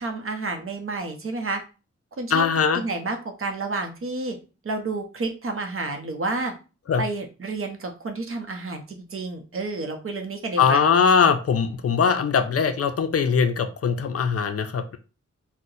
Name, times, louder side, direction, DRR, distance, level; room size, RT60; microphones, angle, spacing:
voice 1, 0.0-1.6 2.2-2.5 2.7-4.4 4.6-6.5 7.0-10.8, right 3 dB, 50° right, 4 dB, 0.7 m, -30 dB
voice 2, 2.3-2.8 6.9-7.0 10.6-15.0, left 6 dB, 55° left, 8 dB, 0.4 m, -21 dB
2.7 x 2.1 x 3.9 m, 0.33 s
wide cardioid pair, 125°, 29 cm